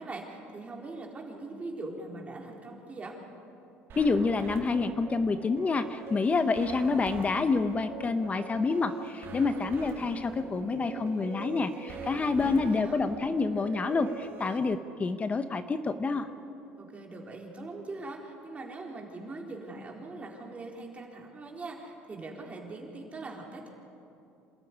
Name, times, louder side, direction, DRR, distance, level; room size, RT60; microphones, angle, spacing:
voice 1, 0.0-3.2 12.4-13.0 16.8-23.7, right 2 dB, 25° right, 0 dB, 4.3 m, -41 dB
sound 1, 3.9-14.6, right 5 dB, 50° right, 3.3 m, -44 dB
voice 2, 4.0-16.3, left 4 dB, 30° left, 10 dB, 1.1 m, -28 dB
26.5 x 13.5 x 9.6 m, 2.8 s
supercardioid pair, 90°, 5 cm